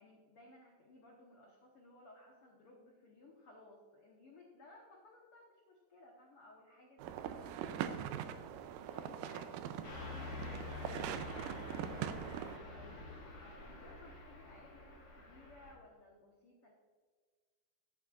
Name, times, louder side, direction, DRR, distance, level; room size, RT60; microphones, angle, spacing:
voice 1, 0.0-11.2 13.4-16.7, left 2 dB, 85° left, -2 dB, 1.2 m, -60 dB
sound 1, 7.0-12.6, right 9 dB, 85° right, 1.9 m, -42 dB
Car passing by / Truck, 9.8-15.7, left 4 dB, 50° left, 3.3 m, -48 dB
voice 2, 11.3-13.1, right 2 dB, 65° right, 0 dB, 3.0 m, -56 dB
11.5 x 8.9 x 2.4 m, 1.5 s
omnidirectional pair, 4.4 m